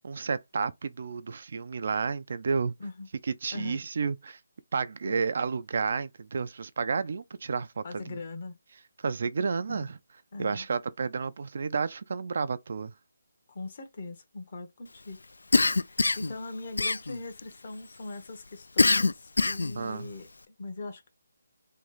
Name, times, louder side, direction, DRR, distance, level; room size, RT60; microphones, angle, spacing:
voice 1, 0.0-2.7 3.2-4.4 4.7-8.2 9.0-10.0 10.4-12.9 19.8-20.1, right 5 dB, 55° right, 0.3 m, -31 dB
voice 2, 7.8-8.6 9.7-9.9 10.3-10.7 13.5-15.2 15.8-21.0, left 3 dB, 45° left, 0.9 m, -41 dB
Cough, 15.5-16.3 16.8-17.4 18.8-19.8, left 3 dB, 80° left, 0.3 m, -23 dB
3.1 x 2.3 x 3.9 m
figure-of-eight pair, 160°, 0 cm